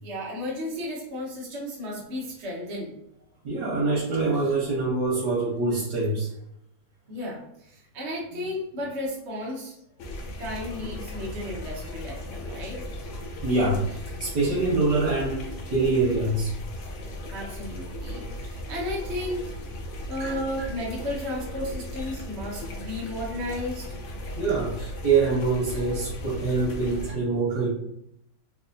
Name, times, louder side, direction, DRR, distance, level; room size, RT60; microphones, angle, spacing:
voice 1, 0.0-2.9 7.1-9.7 10.2-12.8 17.3-19.4 20.1-23.9, left 1 dB, 55° right, -4 dB, 0.9 m, -34 dB
voice 2, 3.4-6.3 8.3-8.5 11.7-11.9 12.4-12.7 13.4-16.5 20.2-20.7 22.0-22.1 24.4-27.7, right 3 dB, 85° right, -5 dB, 1.5 m, -25 dB
sound 1, 10.0-27.1, left 1 dB, 65° left, 0.8 m, -37 dB
4.1 x 2.3 x 2.6 m, 0.78 s
omnidirectional pair, 1.7 m